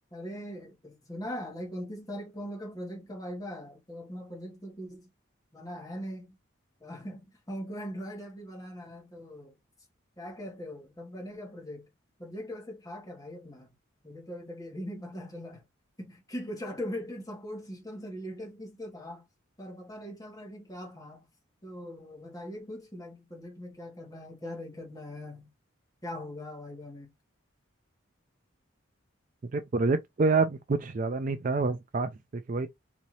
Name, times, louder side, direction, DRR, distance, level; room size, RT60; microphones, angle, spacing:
voice 1, 0.1-5.1 5.5-6.4 6.8-9.5 10.2-11.9 12.2-13.7 14.0-15.6 16.0-19.2 19.6-21.3 21.6-25.5 26.0-27.1, equal, 15° left, 1.3 m, -41 dB
voice 2, 29.5-32.7, right 3 dB, 40° right, 0.4 m, -27 dB
4.1 x 2.8 x 3.1 m
head